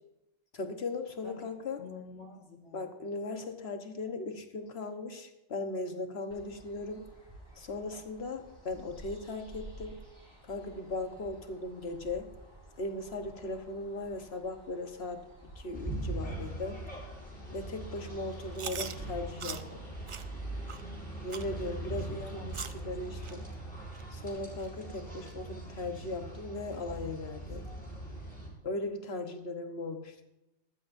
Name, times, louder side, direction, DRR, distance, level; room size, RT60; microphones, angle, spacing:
voice 1, 0.5-1.8 2.7-7.1 7.5-10.0 10.4-12.3 12.8-16.8 17.5-19.8 21.2-22.4 22.7-23.5 24.1-27.7 28.6-30.2, left 2 dB, 60° left, 6 dB, 1.4 m, -38 dB
voice 2, 1.8-2.9 22.1-22.9 23.3-23.7, left 3 dB, 85° left, 2 dB, 2.0 m, -48 dB
sound 1, 6.3-24.3, right 1 dB, 25° right, 4.5 m, -54 dB
sound 2, 15.7-28.5, right 2 dB, 5° left, 6.1 m, -41 dB
Chewing mastication, 18.5-18.9 19.4-19.6 20.1-20.2 20.7-20.8 21.3-21.5 22.0-22.1 22.5-22.8 23.2-23.3 23.9-24.0 24.6-24.7 25.3-25.4, right 6 dB, 45° right, 0.4 m, -40 dB
18.5 x 14.5 x 2.7 m, 0.94 s
omnidirectional pair, 1.2 m